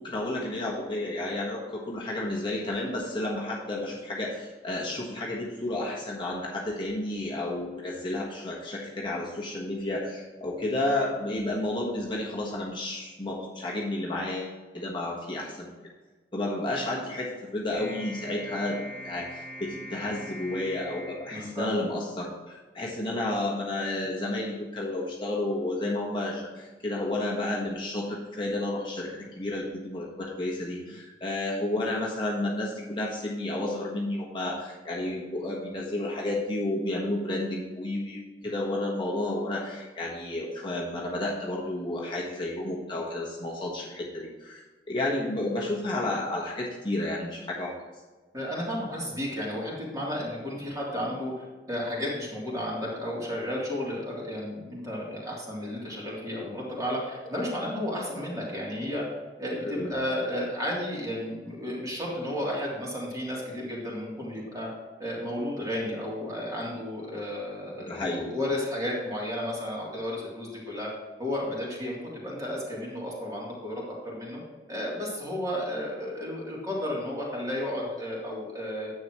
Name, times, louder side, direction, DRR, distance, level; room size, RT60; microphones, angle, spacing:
voice 1, 0.0-15.7 16.3-44.6 44.9-47.8 59.6-60.0 67.8-68.3, left 1 dB, 30° left, -3 dB, 1.4 m, -31 dB
sound 1, 17.7-22.2, equal, 10° left, 1.2 m, -43 dB
voice 2, 21.2-21.8 38.4-38.5 48.3-59.0 59.4-64.7 65.0-70.9 71.2-74.4 74.7-78.9, left 1 dB, 20° right, -5 dB, 3.2 m, -33 dB
10.5 x 8.0 x 3.1 m, 1.3 s
head